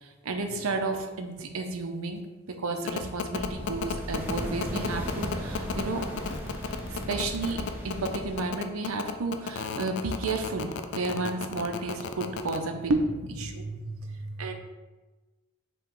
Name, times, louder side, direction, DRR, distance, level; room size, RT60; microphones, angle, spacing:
voice 1, 0.0-2.2 2.5-6.0 6.7-7.6 7.8-13.7 14.4-14.5, right 3 dB, 90° right, 5 dB, 0.6 m, -32 dB
sound 1, 2.9-12.6, left 6 dB, 55° left, 0.3 m, -33 dB
sound 2, 3.3-8.4, equal, 10° right, 0.7 m, -36 dB
voice 2, 13.5-14.5, right 2 dB, 55° right, -2 dB, 0.9 m, -38 dB
5.7 x 2.3 x 3.7 m, 1.2 s
head